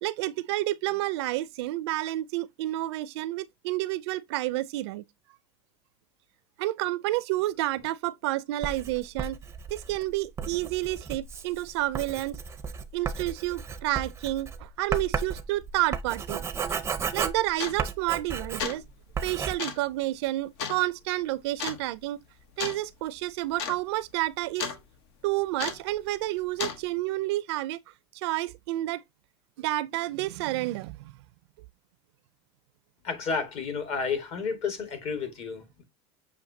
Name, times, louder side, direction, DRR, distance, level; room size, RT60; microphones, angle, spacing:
voice 1, 0.0-5.1 6.6-9.4 9.7-12.4 12.9-16.4 17.1-18.8 19.2-22.2 22.6-24.7 25.2-27.8 28.1-29.0 29.6-31.2, right 17 dB, 75° right, 0.4 m, -30 dB
Writing, 8.6-18.9 19.1-19.5, right 6 dB, 20° right, 0.5 m, -34 dB
sound 1, 16.7-16.8 17.6-18.0 18.4-18.9 19.6-19.9 20.6-20.8 21.6-21.8 22.6-22.8 23.1-23.2 23.5-23.8 24.1-24.8 25.6-25.9 26.6-26.8, left 6 dB, 75° left, 1.1 m, -33 dB
voice 2, 33.0-35.8, left 5 dB, 45° left, 1.6 m, -31 dB
7.1 x 2.7 x 2.6 m
supercardioid pair, 115°, 14 cm